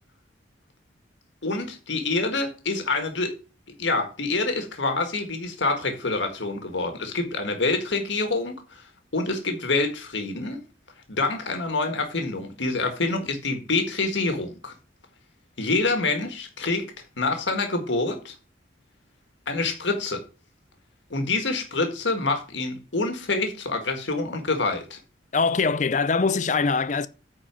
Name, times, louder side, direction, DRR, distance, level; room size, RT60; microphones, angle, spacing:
voice 1, 1.4-3.3 3.8-8.8 9.1-10.6 11.1-14.7 15.6-16.8 17.2-18.3 19.5-20.2 21.1-25.0, left 3 dB, 75° left, 1.6 m, -26 dB
voice 2, 25.3-27.1, left 4 dB, 40° left, 0.5 m, -22 dB
9.1 x 4.4 x 6.2 m
head